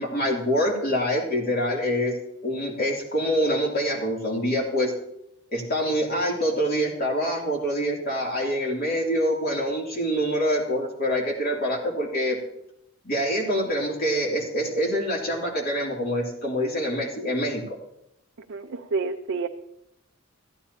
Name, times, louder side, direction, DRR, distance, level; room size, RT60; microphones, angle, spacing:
voice 1, 0.0-2.2 2.4-4.9 5.5-12.4 13.0-17.6, equal, 50° left, -2 dB, 2.9 m, -25 dB
voice 2, 18.5-19.5, right 4 dB, 60° right, 4 dB, 0.5 m, -29 dB
15.0 x 10.0 x 2.8 m, 0.79 s
head